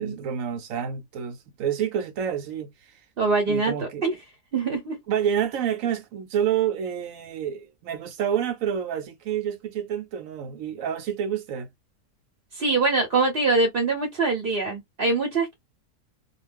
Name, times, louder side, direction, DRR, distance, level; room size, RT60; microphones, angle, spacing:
voice 1, 0.0-3.0 3.5-4.0 5.1-11.7, right 9 dB, 65° right, 1.0 m, -28 dB
voice 2, 3.2-4.1 4.5-5.0 12.5-15.5, right 3 dB, 45° right, 0.8 m, -24 dB
2.4 x 2.4 x 3.3 m
omnidirectional pair, 1.7 m